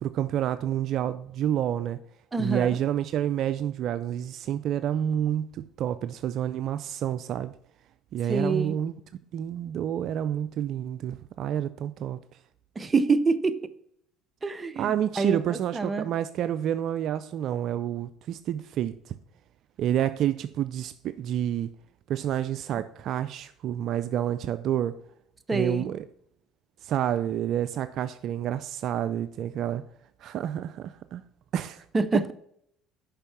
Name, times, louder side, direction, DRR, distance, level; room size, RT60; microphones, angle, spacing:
voice 1, 0.0-2.0 2.4-7.6 8.1-8.9 9.3-12.2 14.8-19.2 19.8-21.7 22.1-25.0 25.5-26.1 26.8-29.8 30.2-31.2 31.5-31.9, right 10 dB, 60° right, 0.4 m, -29 dB
voice 2, 2.3-2.8 8.3-8.7 12.8-13.6 14.4-16.1 25.5-25.9 31.9-32.3, right 3 dB, 25° right, 0.7 m, -26 dB
6.8 x 5.4 x 5.7 m
supercardioid pair, 75°, 0 cm